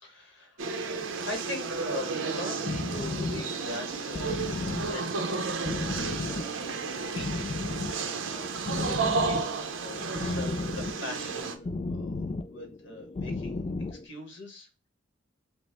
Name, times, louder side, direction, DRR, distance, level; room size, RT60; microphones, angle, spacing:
voice 1, 0.0-7.5 8.3-14.7, left 2 dB, 60° left, 3 dB, 1.4 m, -42 dB
sound 1, 0.6-11.6, right 4 dB, 80° right, 0.7 m, -32 dB
sound 2, 2.7-14.1, left 3 dB, 30° left, 0.3 m, -35 dB
5.1 x 2.1 x 3.4 m, 0.29 s
head